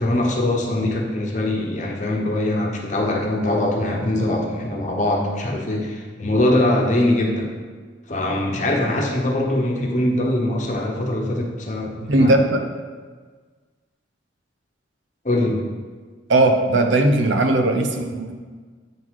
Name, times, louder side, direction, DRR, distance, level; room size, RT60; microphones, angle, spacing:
voice 1, 0.0-7.5 8.1-12.3 15.2-15.6, left 1 dB, 40° left, 0 dB, 1.0 m, -22 dB
voice 2, 12.0-12.6 16.3-18.3, right 2 dB, 80° right, 5 dB, 0.8 m, -18 dB
8.9 x 4.0 x 4.7 m, 1.5 s
head